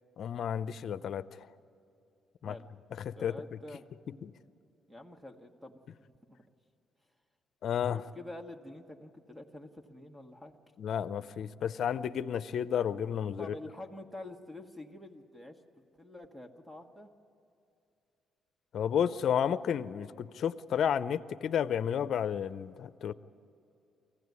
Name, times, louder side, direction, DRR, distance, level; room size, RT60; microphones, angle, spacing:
voice 1, 0.2-1.5 2.4-2.6 3.0-3.4 4.2-4.3 7.6-8.0 10.8-13.5 18.7-23.1, left 8 dB, 65° left, 14 dB, 0.6 m, -32 dB
voice 2, 3.2-3.8 4.9-6.4 7.9-10.6 13.4-17.1, left 1 dB, 10° right, 4 dB, 1.6 m, -47 dB
23.5 x 16.0 x 9.6 m, 2.6 s
cardioid pair, 90°, 0 cm